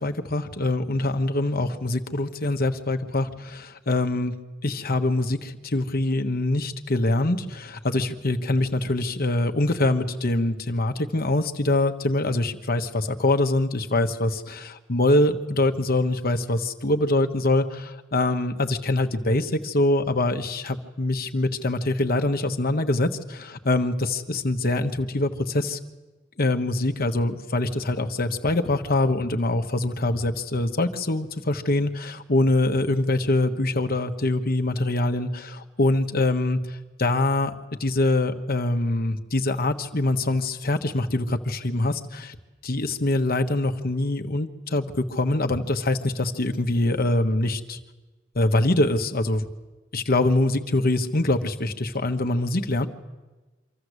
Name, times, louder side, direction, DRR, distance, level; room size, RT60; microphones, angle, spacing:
voice 1, 0.0-4.3 4.6-25.8 26.4-37.5 37.8-42.4 42.6-47.8 48.3-49.4 49.9-52.9, left 2 dB, 50° left, 6 dB, 1.2 m, -24 dB
25.0 x 13.5 x 8.2 m, 1.2 s
head